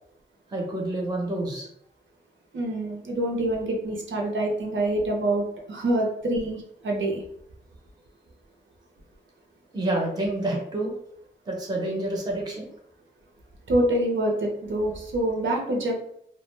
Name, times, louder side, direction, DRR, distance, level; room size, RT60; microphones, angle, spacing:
voice 1, 0.5-1.7 9.7-10.9 11.5-12.7, right 1 dB, 20° right, -1 dB, 0.6 m, -28 dB
voice 2, 2.5-7.2 13.7-16.0, right 1 dB, 75° right, -1 dB, 0.6 m, -26 dB
2.3 x 2.1 x 3.1 m, 0.72 s
wide cardioid pair, 135°, 20 cm